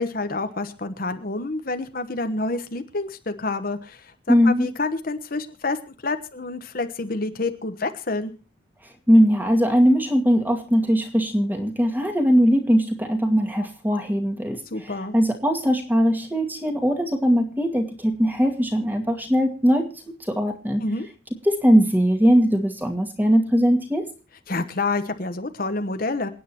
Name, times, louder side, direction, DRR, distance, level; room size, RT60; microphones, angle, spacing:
voice 1, 0.0-5.8 6.0-8.3 14.7-15.1 20.8-21.1 24.5-26.3, left 3 dB, 50° left, 9 dB, 1.1 m, -28 dB
voice 2, 4.3-4.7 9.1-19.9 20.3-20.8 21.4-24.1, equal, 10° right, 4 dB, 2.2 m, -20 dB
27.5 x 9.3 x 2.9 m, 0.34 s
head